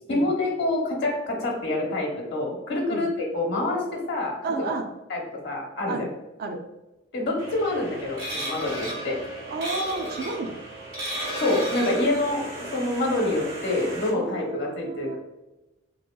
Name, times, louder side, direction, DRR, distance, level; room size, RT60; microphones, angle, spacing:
voice 1, 0.1-4.7 5.1-6.1 7.1-9.2 11.4-15.2, left 2 dB, 60° left, -1 dB, 0.9 m, -27 dB
voice 2, 4.4-4.9 5.9-6.1 6.4-6.6 9.5-10.6 14.1-15.2, right 3 dB, 50° right, 4 dB, 0.4 m, -31 dB
sound 1, 7.4-14.1, right 1 dB, 75° right, 1.4 m, -34 dB
3.0 x 2.9 x 2.2 m, 1.0 s
head